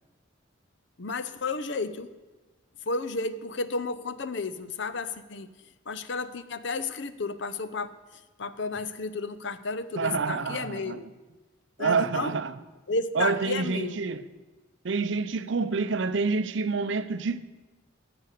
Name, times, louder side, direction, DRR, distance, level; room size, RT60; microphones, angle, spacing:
voice 1, 1.0-2.1 2.9-5.5 5.9-11.1 11.8-12.4 12.9-14.0, left 3 dB, 60° left, 0.7 m, -32 dB
voice 2, 10.0-11.0 11.8-12.5 13.1-14.3 14.8-17.4, right 4 dB, 65° right, 0.6 m, -27 dB
16.5 x 6.9 x 6.7 m
head